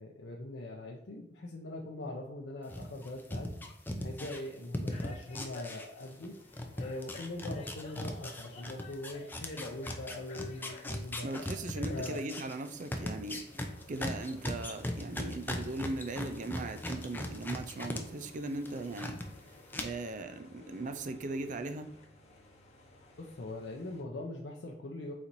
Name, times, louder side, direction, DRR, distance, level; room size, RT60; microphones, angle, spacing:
voice 1, 0.0-3.5 4.0-6.3 6.7-11.3 11.9-12.2 23.2-25.1, left 2 dB, 75° left, -2 dB, 0.6 m, -42 dB
sound 1, 2.7-6.3 6.5-18.0 18.3-19.3 19.7-19.8, left 1 dB, 10° left, 0.5 m, -38 dB
sound 2, 4.9-24.0, left 2 dB, 40° left, 1.0 m, -55 dB
voice 2, 11.2-13.5 13.9-19.2 19.8-21.9, right 2 dB, 45° right, 9 dB, 0.4 m, -38 dB
4.5 x 4.1 x 2.6 m, 0.88 s
head